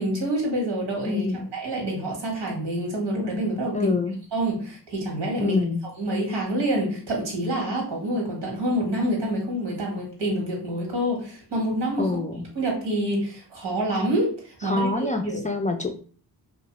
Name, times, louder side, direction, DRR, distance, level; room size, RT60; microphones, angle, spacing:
voice 1, 0.0-1.3 1.5-4.0 4.3-5.6 6.0-12.2 12.5-15.5, right 1 dB, 85° right, -1 dB, 1.2 m, -27 dB
voice 2, 1.1-1.5 3.7-4.2 5.4-5.8 12.0-12.4 14.6-15.9, left 3 dB, 20° left, 4 dB, 0.3 m, -26 dB
2.8 x 2.1 x 2.9 m, 0.43 s
cardioid pair, 45°, 41 cm